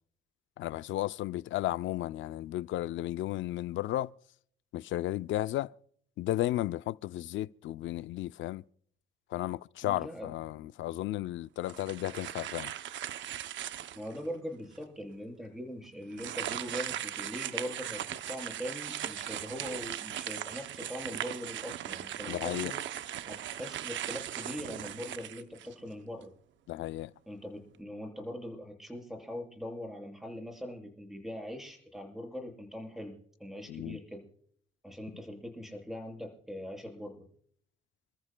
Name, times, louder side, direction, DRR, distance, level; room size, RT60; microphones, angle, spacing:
voice 1, 0.6-4.1 4.7-5.7 6.2-8.6 9.3-12.7 22.3-22.7 26.7-27.1 33.7-34.0, left 14 dB, 75° left, 0.5 m, -34 dB
voice 2, 9.8-10.3 13.9-26.3 27.3-34.3 34.8-37.3, equal, ahead, 6.9 m, -42 dB
sound 1, 11.6-14.2 14.8-14.9 16.1-25.9, right 11 dB, 70° right, 0.7 m, -38 dB
30.0 x 13.5 x 2.2 m
cardioid pair, 90°, 20 cm